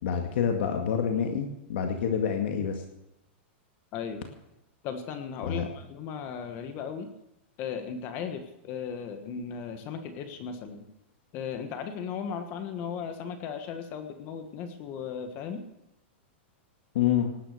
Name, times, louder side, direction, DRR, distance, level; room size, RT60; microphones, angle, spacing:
voice 1, 0.0-2.8 5.5-5.7 16.9-17.3, left 8 dB, 65° left, 4 dB, 2.1 m, -27 dB
voice 2, 4.8-7.1 7.6-10.9 11.3-15.6, left 7 dB, 30° left, 8 dB, 1.4 m, -36 dB
18.5 x 10.0 x 6.7 m, 0.88 s
supercardioid pair, 170°, 6 cm